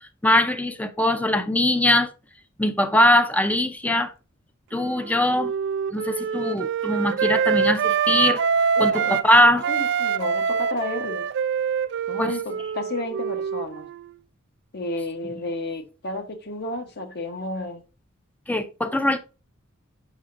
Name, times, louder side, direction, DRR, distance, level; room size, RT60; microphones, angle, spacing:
voice 1, 0.2-2.1 2.6-4.1 4.7-5.5 5.9-8.4 8.8-9.6 12.2-12.3 18.5-19.2, left 1 dB, 5° left, 0.6 m, -21 dB
Wind instrument woodwind instrument, 4.8-9.3 9.6-14.1, right 6 dB, 60° right, 0.3 m, -25 dB
voice 2, 8.8-11.3 12.1-13.9 14.7-17.8, left 2 dB, 50° left, 1.1 m, -32 dB
7.1 x 5.7 x 2.6 m
head